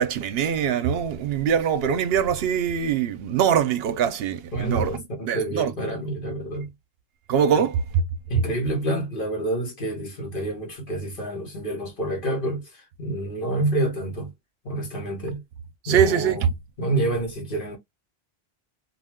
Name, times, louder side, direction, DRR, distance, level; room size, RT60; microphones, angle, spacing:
voice 1, 0.0-5.7 7.3-8.0 15.8-16.5, right 8 dB, 70° right, 0.8 m, -23 dB
voice 2, 4.5-6.7 7.5-7.6 8.3-14.3 14.6-15.4 15.9-16.5 16.8-17.8, right 2 dB, 55° left, 1.3 m, -28 dB
2.4 x 2.2 x 3.5 m
omnidirectional pair, 1.1 m